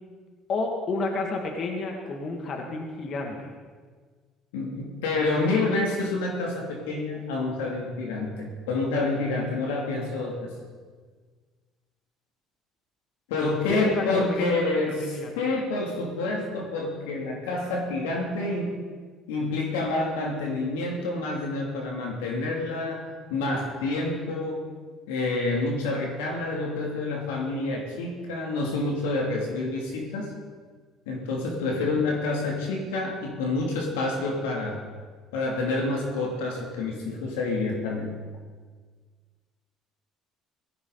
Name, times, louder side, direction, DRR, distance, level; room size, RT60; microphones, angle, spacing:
voice 1, 0.5-3.5 13.7-15.4, left 3 dB, 50° left, 2 dB, 2.3 m, -31 dB
voice 2, 4.5-10.5 13.3-18.8 19.3-24.7 25.1-30.4 31.1-34.8 35.3-38.2, left 2 dB, 90° left, 0 dB, 2.8 m, -28 dB
17.5 x 15.0 x 4.1 m, 1.5 s
supercardioid pair, 75°, 0 cm